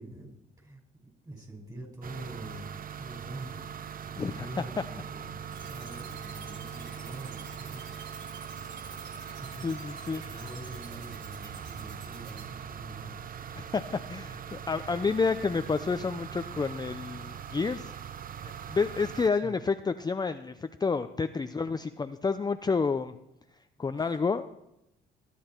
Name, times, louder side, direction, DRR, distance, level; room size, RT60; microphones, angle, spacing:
voice 1, 0.0-3.9 4.1-9.8 10.3-13.2 19.4-19.6 24.0-24.2, right 1 dB, 20° right, 1 dB, 5.4 m, -46 dB
sound 1, 2.0-19.3, right 8 dB, 45° right, 0.7 m, -41 dB
voice 2, 4.2-4.5 9.6-10.2 13.5-17.9 18.7-23.2 23.8-24.4, left 4 dB, 20° left, 9 dB, 0.5 m, -29 dB
sound 2, 5.5-12.4, right 5 dB, 70° right, 4.0 m, -49 dB
20.5 x 10.0 x 4.5 m, 0.84 s
cardioid pair, 90°, 20 cm